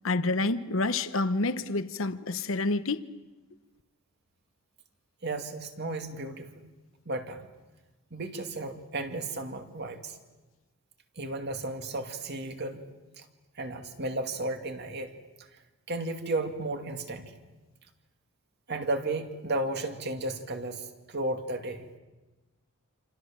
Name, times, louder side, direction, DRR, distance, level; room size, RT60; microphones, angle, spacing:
voice 1, 0.0-3.0, left 2 dB, 65° left, 1.0 m, -28 dB
voice 2, 5.2-6.5 7.1-7.5 8.1-10.2 11.2-12.8 13.2-13.3 13.6-15.1 15.9-17.3 18.7-21.9, right 2 dB, 50° right, 2.4 m, -34 dB
28.0 x 27.5 x 7.5 m
head